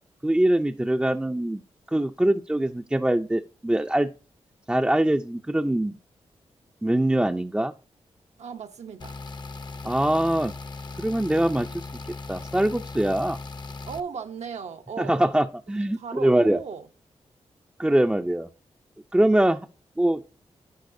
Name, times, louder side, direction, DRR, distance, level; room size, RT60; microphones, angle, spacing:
voice 1, 0.2-1.6 1.9-4.1 4.7-6.0 6.8-7.7 9.8-10.5 11.0-11.9 12.3-13.4 15.0-16.6 17.8-18.5 19.1-19.7 20.0-20.2, right 1 dB, 10° right, 0.4 m, -23 dB
voice 2, 8.4-9.2 13.9-15.3 16.0-16.9, right 6 dB, 75° right, 0.8 m, -36 dB
sound 1, 9.0-14.0, left 3 dB, 40° left, 0.6 m, -38 dB
10.5 x 4.7 x 2.6 m
cardioid pair, 60°, 11 cm